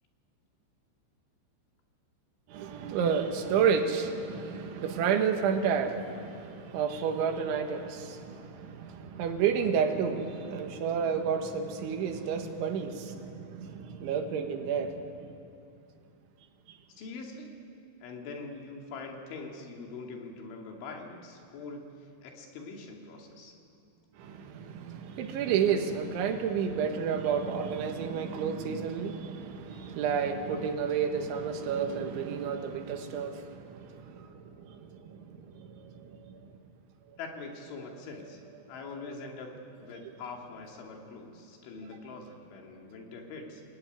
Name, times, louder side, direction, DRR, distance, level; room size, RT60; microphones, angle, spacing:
voice 1, 2.5-15.2 16.7-16.8 24.2-36.5, right 7 dB, 85° right, 5 dB, 4.0 m, -31 dB
voice 2, 17.0-17.5 18.0-21.9 22.2-23.6 37.2-38.4 38.7-39.5 39.8-43.6, left 4 dB, 85° left, 1 dB, 4.9 m, -43 dB
26.5 x 19.0 x 9.7 m, 2.6 s
omnidirectional pair, 5.3 m